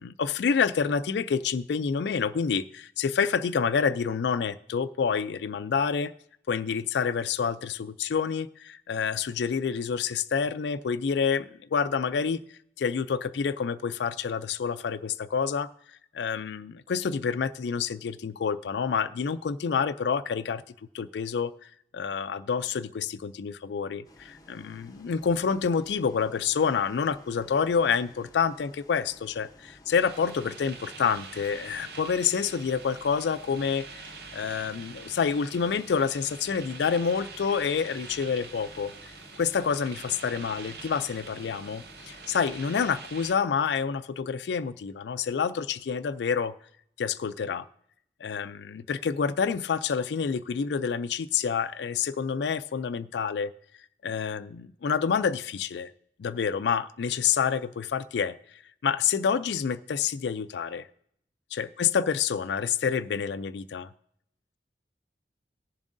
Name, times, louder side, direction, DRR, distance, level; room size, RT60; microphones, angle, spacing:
voice 1, 0.0-6.1 6.5-12.4 12.8-20.6 20.9-34.1 34.3-39.1 39.4-46.5 47.0-47.7 48.2-53.5 54.0-55.9 56.2-60.9 61.5-63.9, left 6 dB, 75° left, 12 dB, 0.4 m, -28 dB
Bus, 24.0-43.0, left 1 dB, 20° left, 0.8 m, -55 dB
sound 1, 29.9-43.3, right 4 dB, 60° right, 0.7 m, -45 dB
19.0 x 7.2 x 2.6 m, 0.71 s
head